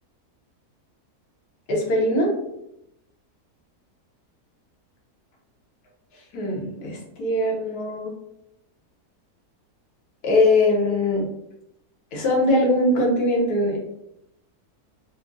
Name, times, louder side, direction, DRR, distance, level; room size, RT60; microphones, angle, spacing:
voice 1, 1.7-2.4 6.3-8.1 10.2-11.3 12.1-13.8, left 1 dB, 75° left, -2 dB, 1.3 m, -21 dB
3.6 x 2.0 x 2.4 m, 0.84 s
omnidirectional pair, 1.7 m